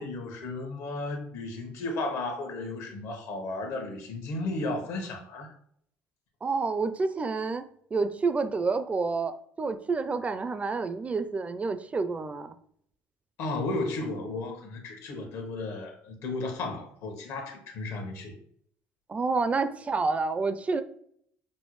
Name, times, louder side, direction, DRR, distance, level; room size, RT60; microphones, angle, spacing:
voice 1, 0.0-5.5 13.4-18.4, left 2 dB, 70° left, 3 dB, 1.1 m, -34 dB
voice 2, 6.4-9.3 9.6-12.6 19.1-20.8, right 4 dB, 25° right, 11 dB, 0.4 m, -29 dB
5.3 x 2.1 x 3.1 m, 0.67 s
supercardioid pair, 85°, 5 cm